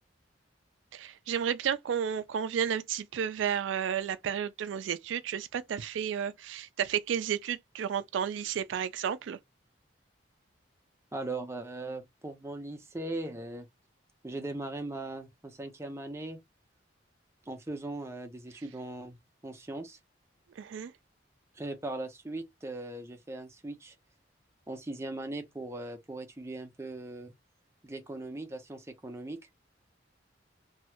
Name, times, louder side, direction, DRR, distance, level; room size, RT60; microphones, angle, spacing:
voice 1, 0.9-9.4 20.6-20.9, right 8 dB, 80° right, 0.3 m, -32 dB
voice 2, 11.1-13.7 14.2-16.4 17.5-19.2 19.4-20.0 21.6-23.9 24.7-27.3 27.8-29.4, right 2 dB, 15° right, 0.5 m, -39 dB
3.0 x 2.3 x 2.9 m
head